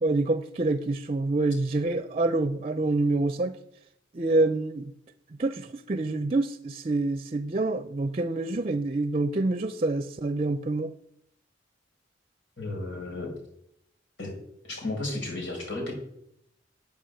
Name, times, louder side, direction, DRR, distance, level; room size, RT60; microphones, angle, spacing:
voice 1, 0.0-3.6 4.1-4.9 5.3-10.9, right 2 dB, 35° right, 11 dB, 0.5 m, -27 dB
voice 2, 12.6-13.3 14.2-14.3 14.6-15.9, left 2 dB, 90° left, -1 dB, 5.1 m, -33 dB
9.5 x 8.7 x 7.7 m, 0.75 s
head